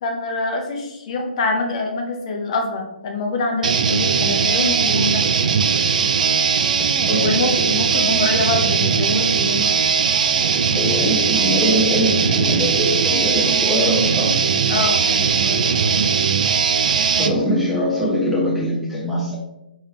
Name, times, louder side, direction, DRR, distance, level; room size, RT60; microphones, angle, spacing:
voice 1, 0.0-5.2 7.2-9.8 14.7-15.8, left 3 dB, 40° left, 2 dB, 0.8 m, -25 dB
sound 1, 3.6-17.3, right 6 dB, 50° right, 0.3 m, -19 dB
voice 2, 6.9-7.3 7.6-7.7 10.7-14.4 17.1-19.4, equal, ahead, -6 dB, 1.0 m, -22 dB
3.5 x 3.3 x 3.2 m, 0.92 s
figure-of-eight pair, 130°, 5 cm